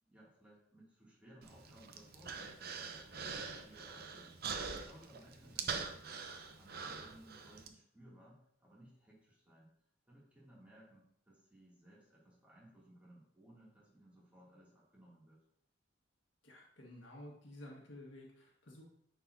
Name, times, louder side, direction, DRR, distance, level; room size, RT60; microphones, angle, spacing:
voice 1, 0.0-4.3 4.8-6.1 6.5-9.7 10.1-15.4, right 1 dB, 10° right, -7 dB, 2.4 m, -61 dB
Human voice, 1.4-7.7, right 5 dB, 55° right, 0.7 m, -44 dB
voice 2, 16.4-18.8, left 1 dB, 80° left, -2 dB, 1.5 m, -53 dB
9.5 x 4.6 x 2.7 m, 0.69 s
head